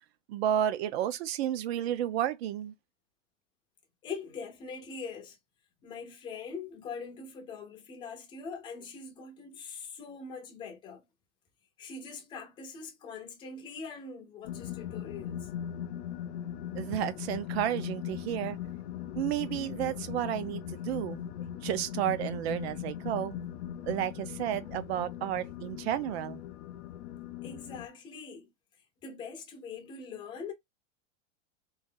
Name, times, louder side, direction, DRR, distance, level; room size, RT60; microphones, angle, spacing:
voice 1, 0.3-2.7 16.7-18.6 19.2-21.2 21.6-23.4 23.8-26.4, right 11 dB, 55° right, 0.7 m, -32 dB
voice 2, 4.0-5.4 5.8-11.0 11.8-15.5 27.4-28.5 29.0-30.5, left 5 dB, 10° left, 0.6 m, -42 dB
sound 1, 14.4-27.9, left 10 dB, 65° left, 0.7 m, -39 dB
3.4 x 2.5 x 3.7 m
supercardioid pair, 180°, 39 cm